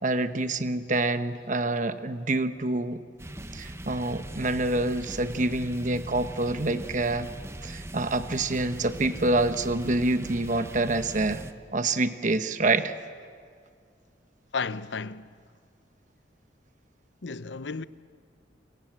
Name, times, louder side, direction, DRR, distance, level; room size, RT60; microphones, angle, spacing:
voice 1, 0.0-3.0 3.5-7.3 7.6-11.4 11.7-12.9, right 2 dB, 45° right, 1.1 m, -27 dB
sound 1, 3.2-11.5, right 1 dB, 15° right, 0.9 m, -40 dB
voice 2, 14.5-15.3 17.2-17.8, left 4 dB, 85° left, 0.8 m, -33 dB
29.0 x 25.0 x 7.8 m
head